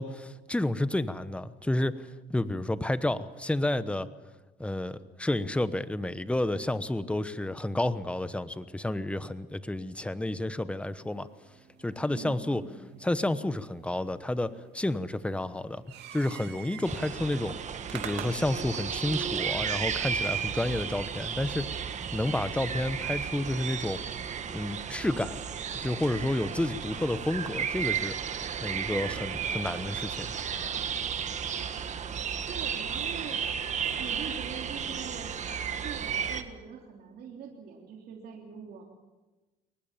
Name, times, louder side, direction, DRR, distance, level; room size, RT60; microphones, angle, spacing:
voice 1, 0.0-4.1 4.6-11.3 11.8-12.6 13.0-15.8 16.1-17.5 17.9-21.7 22.1-24.0 24.5-25.5 25.8-28.1 28.6-30.3, left 1 dB, 5° left, 13 dB, 1.0 m, -30 dB
sound 1, 10.7-23.3, right 9 dB, 80° right, 2.8 m, -49 dB
voice 2, 12.1-12.8 32.5-33.4 34.0-35.3 35.8-38.8, right 6 dB, 65° right, 0 dB, 3.2 m, -43 dB
sound 2, 16.8-36.4, right 7 dB, 45° right, 1.7 m, -33 dB
23.0 x 19.5 x 7.4 m, 1.2 s
cardioid pair, 110°, 17 cm